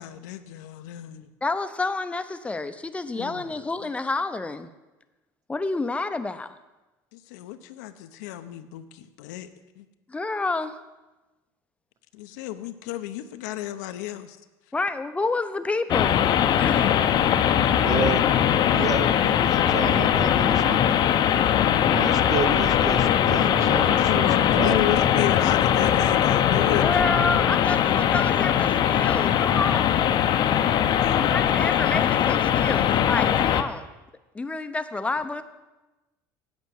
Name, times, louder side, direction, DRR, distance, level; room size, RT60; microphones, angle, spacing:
voice 1, 0.0-1.3 3.1-3.9 7.1-9.5 9.8-9.9 12.1-14.4 23.6-26.8 27.2-27.6 31.0-32.1, left 13 dB, 85° left, 10 dB, 0.7 m, -33 dB
voice 2, 1.4-4.7 5.5-6.5 10.1-10.7 14.7-16.3 16.6-16.9 26.5-30.0 31.2-33.9 34.3-35.4, left 3 dB, 15° left, 10 dB, 0.7 m, -29 dB
sound 1, 15.9-33.6, left 9 dB, 50° left, 0.7 m, -21 dB
voice 3, 17.8-18.3 18.7-20.8 21.8-25.0, right 7 dB, 40° right, 12 dB, 0.8 m, -31 dB
8.6 x 8.2 x 6.4 m, 1.1 s
supercardioid pair, 100°, 9 cm